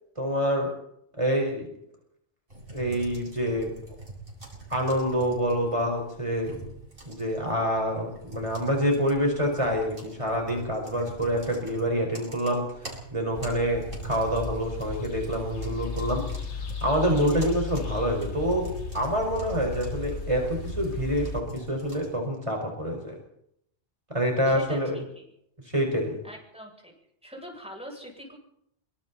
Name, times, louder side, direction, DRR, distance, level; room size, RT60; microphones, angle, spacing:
voice 1, 0.2-0.7 1.2-1.7 2.7-3.7 4.7-6.6 7.1-12.6 13.1-16.2 16.8-18.7 18.9-23.2 24.1-25.0 25.7-26.2, equal, 30° right, 1 dB, 5.3 m, -26 dB
sound 1, 2.5-22.2, right 2 dB, 55° right, 8.0 m, -45 dB
sound 2, 13.3-21.4, left 4 dB, 80° left, 2.0 m, -35 dB
voice 2, 24.5-25.3 26.2-26.9 27.2-28.4, equal, 5° right, -1 dB, 8.0 m, -42 dB
27.0 x 25.0 x 4.3 m, 0.75 s
omnidirectional pair, 1.1 m